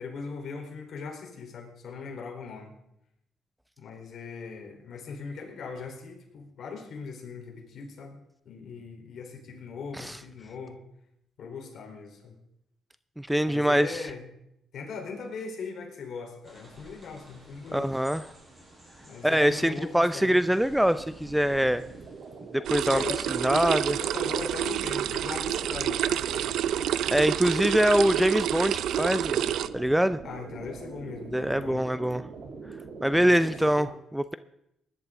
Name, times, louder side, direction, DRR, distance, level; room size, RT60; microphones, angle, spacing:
voice 1, 0.0-2.7 3.8-8.2 8.5-10.8 11.4-12.4 13.4-14.3 14.7-17.9 19.0-20.5 22.9-23.4 24.0-26.6 30.2-31.8 33.1-33.9, left 5 dB, 65° left, 1 dB, 3.6 m, -40 dB
voice 2, 13.2-14.0 17.7-18.2 19.2-21.8 22.5-23.0 23.4-24.0 27.1-30.2 31.3-32.2 33.0-34.3, equal, 5° right, 13 dB, 0.5 m, -24 dB
sound 1, 16.4-22.7, right 1 dB, 25° right, 6.6 m, -53 dB
sound 2, 20.6-33.7, right 4 dB, 60° right, 2.9 m, -43 dB
sound 3, 22.7-29.7, right 11 dB, 80° right, 0.4 m, -28 dB
19.0 x 11.5 x 3.7 m, 0.81 s
cardioid pair, 90°, 0 cm